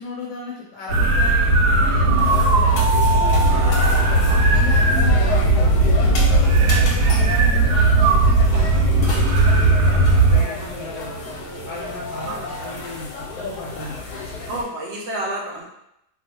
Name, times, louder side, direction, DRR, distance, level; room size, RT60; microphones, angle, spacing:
voice 1, 0.0-2.9 3.7-3.8 4.2-6.2 6.7-9.2 10.1-11.2 11.6-14.0, left 3 dB, 70° left, -3 dB, 0.9 m, -36 dB
sound 1, 0.9-10.4, right 2 dB, 90° right, 1.1 m, -17 dB
sound 2, 1.7-14.6, left 4 dB, 90° left, 1.2 m, -30 dB
sound 3, 2.7-14.6, right 3 dB, 40° left, 0.8 m, -33 dB
voice 2, 3.5-4.3 10.6-10.7 12.2-12.4 14.5-15.6, right 1 dB, 70° right, -2 dB, 0.6 m, -31 dB
2.3 x 2.3 x 2.8 m, 0.79 s
omnidirectional pair, 1.7 m